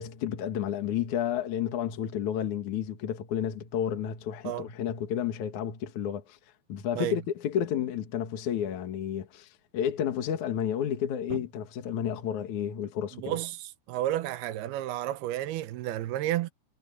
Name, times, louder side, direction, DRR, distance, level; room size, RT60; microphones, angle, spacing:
voice 1, 0.0-6.4 6.7-13.4, left 9 dB, 55° left, 2.9 m, -31 dB
voice 2, 13.1-16.5, right 13 dB, 90° right, 2.9 m, -32 dB
omnidirectional pair, 4.4 m